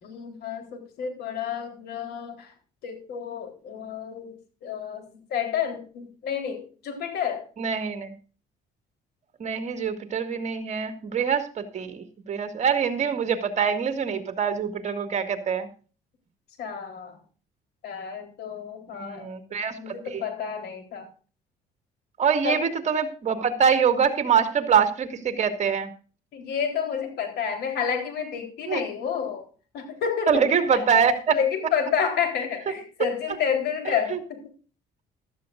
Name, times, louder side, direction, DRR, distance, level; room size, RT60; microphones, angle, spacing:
voice 1, 0.0-2.5 2.8-7.5 16.6-17.2 17.8-19.3 19.8-21.1 22.4-22.7 26.3-29.5 29.7-30.4 30.7-30.9 31.3-34.4, left 7 dB, 70° left, 5 dB, 3.8 m, -30 dB
voice 2, 7.6-8.1 9.4-15.7 19.0-20.2 22.2-25.9 28.7-28.8 30.3-31.4 34.1-34.2, right 7 dB, 45° right, 7 dB, 2.1 m, -24 dB
15.0 x 13.0 x 2.5 m, 0.37 s
cardioid pair, 110°, 17 cm